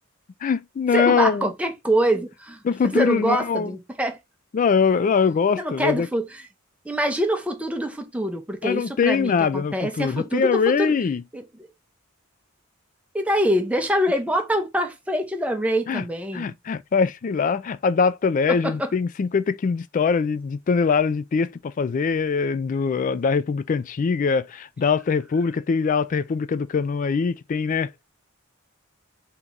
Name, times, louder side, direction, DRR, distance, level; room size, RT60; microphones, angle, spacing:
voice 1, 0.4-1.5 2.6-3.8 4.5-6.1 8.6-11.2 15.9-16.1 16.3-27.9, left 5 dB, 40° left, 0.3 m, -22 dB
voice 2, 0.9-2.6 2.9-4.2 5.6-6.3 6.8-10.9 11.3-11.4 13.1-16.6 18.5-18.9, equal, 5° right, 0.7 m, -24 dB
3.8 x 2.9 x 3.6 m
head